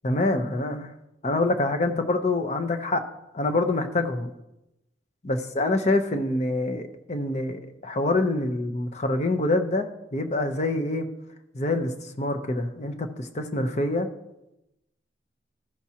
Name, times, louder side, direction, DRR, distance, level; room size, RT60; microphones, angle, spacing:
voice 1, 0.0-0.9 1.2-3.0 3.3-4.3 5.2-11.1 11.5-14.1, left 2 dB, 35° left, 7 dB, 0.7 m, -26 dB
14.5 x 6.0 x 2.8 m, 0.92 s
head